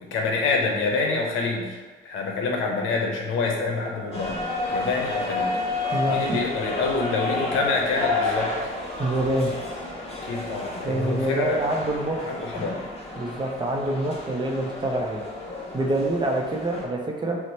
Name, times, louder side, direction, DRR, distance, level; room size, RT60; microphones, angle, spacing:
voice 1, 0.1-1.8 2.0-4.4 4.7-5.6 6.1-8.5 10.3-11.6 12.3-12.8, left 3 dB, 85° left, 0 dB, 0.6 m, -26 dB
sound 1, 4.1-16.8, left 2 dB, 30° left, 0.8 m, -31 dB
voice 2, 5.9-6.4 9.0-9.5 10.8-12.3 13.2-15.2 15.7-17.4, right 1 dB, 25° right, 1 dB, 0.5 m, -26 dB
2.9 x 2.1 x 4.0 m, 1.4 s
cardioid pair, 90°, 20 cm